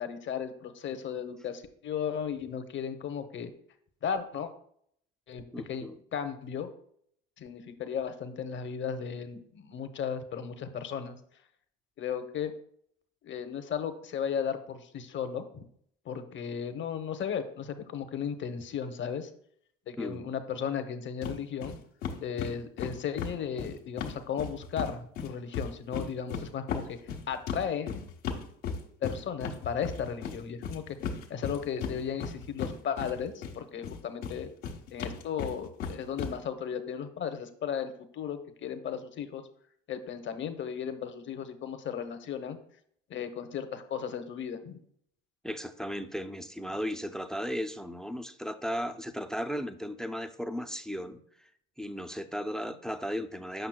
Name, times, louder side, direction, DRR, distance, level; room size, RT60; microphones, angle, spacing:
voice 1, 0.0-3.5 4.0-4.5 5.3-6.7 7.4-11.2 12.0-12.5 13.2-15.7 16.0-19.3 19.9-21.7 22.2-27.0 27.3-28.0 29.0-34.5 34.9-39.4 39.9-42.6 43.1-44.8, left 7 dB, 40° left, 9 dB, 0.8 m, -35 dB
voice 2, 5.5-6.0 20.0-20.2 45.4-51.2 51.8-53.7, equal, ahead, 9 dB, 0.4 m, -35 dB
sound 1, 21.2-21.4 21.6-21.7 22.0-24.9 25.2-33.5 33.8-36.3, left 6 dB, 85° left, 1.3 m, -36 dB
7.8 x 5.5 x 2.2 m, 0.65 s
supercardioid pair, 80°, 30 cm